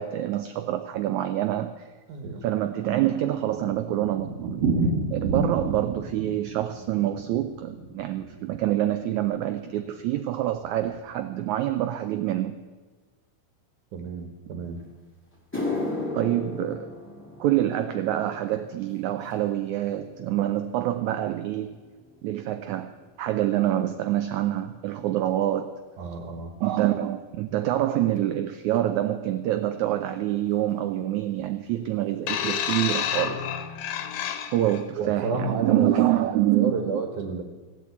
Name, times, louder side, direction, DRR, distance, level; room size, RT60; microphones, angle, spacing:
voice 1, 0.0-1.8 2.4-4.8 5.1-12.5 16.1-16.9 17.4-21.7 22.2-25.7 26.6-33.4 34.5-37.0, right 13 dB, 85° right, 9 dB, 1.6 m, -26 dB
voice 2, 2.1-2.5 13.9-14.8 26.0-26.5 35.0-37.4, right 4 dB, 65° right, 4 dB, 2.6 m, -31 dB
Thunder, 3.1-9.0 9.2-9.3 9.6-9.7 10.0-10.1 10.6-11.0, right 3 dB, 50° right, 1.9 m, -30 dB
sound 1, 14.8-14.9 15.3-23.8 24.1-24.6 25.3-25.4 28.2-28.3 29.9-30.0 30.2-30.4 30.7-31.2 31.6-31.7 32.3-32.4, left 2 dB, 5° left, 1.4 m, -37 dB
sound 2, 32.3-34.8 35.7-35.9, left 9 dB, 85° left, 2.7 m, -29 dB
16.0 x 8.4 x 8.3 m, 1.4 s
omnidirectional pair, 4.1 m